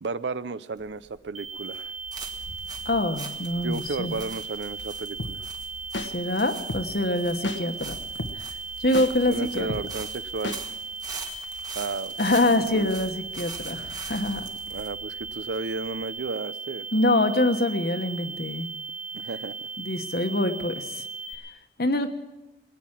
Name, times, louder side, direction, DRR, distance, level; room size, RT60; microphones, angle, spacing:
voice 1, 0.0-1.9 3.6-5.4 9.3-10.6 11.8-12.1 12.7-12.9 14.7-16.9 19.1-19.6, right 4 dB, 70° right, 16 dB, 0.5 m, -33 dB
sound 1, 0.8-16.3, right 3 dB, 20° right, 1.4 m, -43 dB
sound 2, 1.3-21.3, right 4 dB, 45° right, 1.6 m, -37 dB
voice 2, 2.8-4.2 6.0-8.0 8.3-8.5 8.8-9.7 12.2-14.4 16.9-18.7 19.8-21.0 21.8-22.1, left 1 dB, 55° left, 7 dB, 1.3 m, -25 dB
sound 3, 5.2-5.3 5.9-6.1 6.7-6.8 7.4-7.6 8.2-8.3 8.9-9.1 9.7-9.8 10.4-10.6, left 2 dB, 85° left, 1.2 m, -31 dB
20.5 x 9.3 x 7.4 m, 1.1 s
head